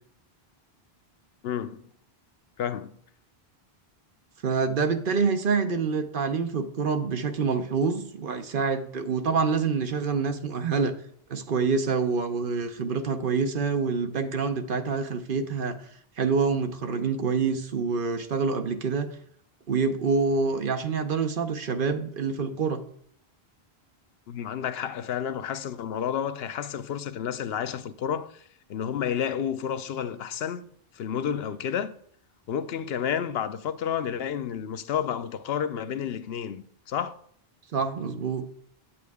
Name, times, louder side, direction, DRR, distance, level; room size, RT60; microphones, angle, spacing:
voice 1, 1.4-1.9 2.6-2.9 24.3-28.4 28.7-30.6 30.9-31.9 32.5-37.2, left 8 dB, 75° left, 0.8 m, -30 dB
voice 2, 4.4-10.9 11.3-15.8 16.2-19.1 19.7-22.8 37.7-38.4, right 5 dB, 60° right, 0.9 m, -26 dB
9.3 x 8.5 x 3.5 m
omnidirectional pair, 1.0 m